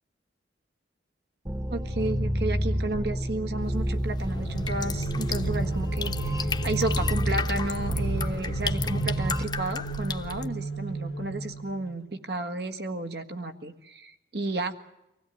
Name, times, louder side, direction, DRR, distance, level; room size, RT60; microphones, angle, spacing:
sound 1, 1.5-9.5, equal, 20° right, 1.2 m, -30 dB
voice 1, 1.7-14.7, right 2 dB, 60° right, 6 dB, 1.6 m, -32 dB
sound 2, 3.6-10.5, left 4 dB, 25° left, 0.9 m, -35 dB
sound 3, 4.2-12.1, right 3 dB, 90° left, 1.7 m, -34 dB
25.0 x 16.5 x 9.3 m, 0.89 s
head